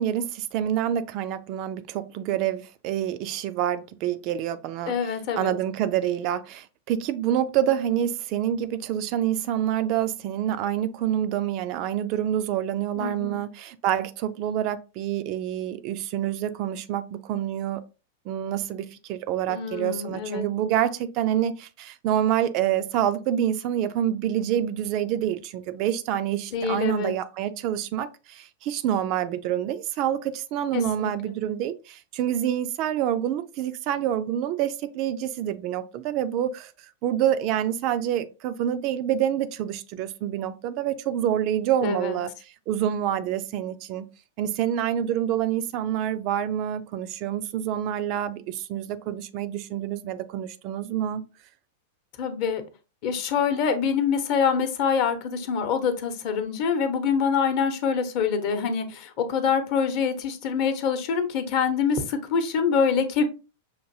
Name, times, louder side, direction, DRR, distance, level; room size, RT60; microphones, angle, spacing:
voice 1, 0.0-17.8 18.3-36.7 37.0-42.3 42.7-44.1 44.4-51.2, right 10 dB, 45° right, 0.3 m, -27 dB
voice 2, 4.9-5.5 13.0-13.4 19.5-20.4 26.5-27.1 30.7-31.3 41.8-42.2 52.2-52.6 53.0-63.2, left 6 dB, 45° left, 0.8 m, -25 dB
5.7 x 2.5 x 2.7 m
figure-of-eight pair, 95°, 0 cm